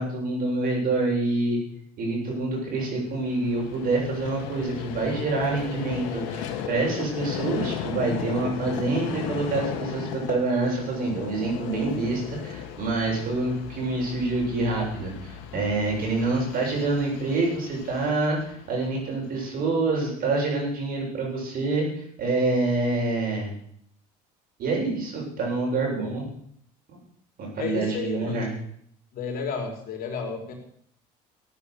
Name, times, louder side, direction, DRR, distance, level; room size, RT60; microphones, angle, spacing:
voice 1, 0.0-1.6 2.0-18.4 18.7-21.9 22.2-23.5 24.6-26.3 26.9-27.0 27.4-28.5, right 3 dB, 55° right, -1 dB, 7.8 m, -26 dB
Vehicle, 3.0-19.4, left 9 dB, 80° left, 2.0 m, -36 dB
voice 2, 27.6-28.5 29.1-30.5, left 5 dB, 55° left, 1 dB, 4.3 m, -32 dB
14.5 x 9.3 x 6.9 m, 0.66 s
supercardioid pair, 90°, 18 cm